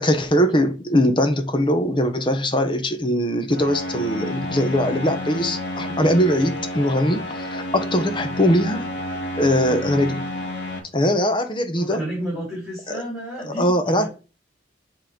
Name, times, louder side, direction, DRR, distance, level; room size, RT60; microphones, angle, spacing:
voice 1, 0.0-8.9 9.4-10.3 10.9-12.0 12.9-13.0 13.5-14.1, equal, 25° left, 0.9 m, -21 dB
sound 1, 3.5-10.8, left 1 dB, 75° left, 1.7 m, -30 dB
voice 2, 11.7-14.1, right 1 dB, ahead, 3.5 m, -31 dB
7.4 x 3.8 x 5.2 m
head